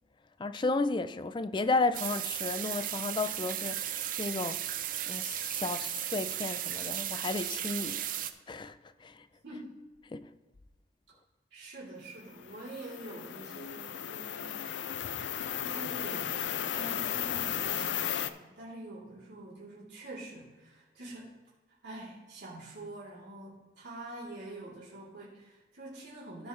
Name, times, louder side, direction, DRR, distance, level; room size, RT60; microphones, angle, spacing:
voice 1, 0.4-4.6 5.1-8.1 8.5-9.3 10.1-10.3, left 3 dB, 25° left, 0.4 m, -33 dB
sound 1, 1.9-8.3, right 11 dB, 50° right, 0.5 m, -35 dB
voice 2, 11.5-14.6 15.6-21.3 21.8-26.5, right 2 dB, 70° right, 3.2 m, -45 dB
sound 2, 12.4-18.3, left 9 dB, 90° left, 0.5 m, -35 dB
15.0 x 5.4 x 3.2 m
head